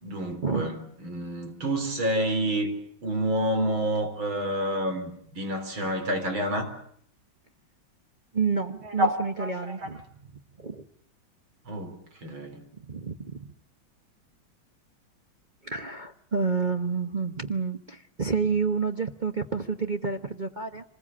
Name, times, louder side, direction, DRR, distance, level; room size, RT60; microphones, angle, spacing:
voice 1, 0.0-2.7 3.0-6.7 8.8-9.9 11.7-12.6, right 1 dB, 90° right, 7 dB, 4.7 m, -29 dB
voice 2, 8.3-10.0 10.6-10.8 12.8-13.4 15.6-20.8, right 5 dB, 30° right, 4 dB, 0.9 m, -29 dB
26.5 x 20.5 x 8.6 m, 0.66 s
omnidirectional pair, 2.1 m